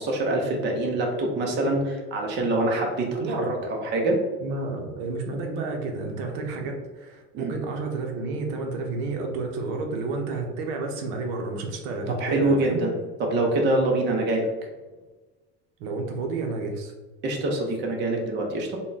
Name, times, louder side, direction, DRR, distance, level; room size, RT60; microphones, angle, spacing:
voice 1, 0.0-4.2 7.3-7.5 12.1-12.9 13.2-14.5 17.2-18.8, right 2 dB, 35° right, 1 dB, 0.7 m, -25 dB
voice 2, 3.2-3.5 4.4-12.8 15.8-16.9, right 3 dB, 70° right, 3 dB, 0.7 m, -31 dB
3.7 x 2.2 x 3.8 m, 1.2 s
cardioid pair, 145°, 32 cm